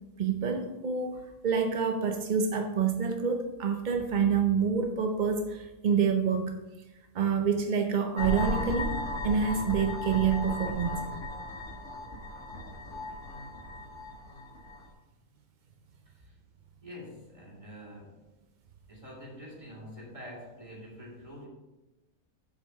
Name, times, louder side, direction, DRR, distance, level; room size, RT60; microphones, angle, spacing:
voice 1, 0.2-6.6 7.1-11.0, right 6 dB, 55° right, 5 dB, 0.5 m, -27 dB
sound 1, 8.2-14.9, left 1 dB, 50° left, 1.8 m, -36 dB
voice 2, 16.8-18.2 18.9-21.5, equal, 20° right, -4 dB, 2.7 m, -46 dB
7.6 x 5.1 x 6.3 m, 1.0 s
omnidirectional pair, 1.6 m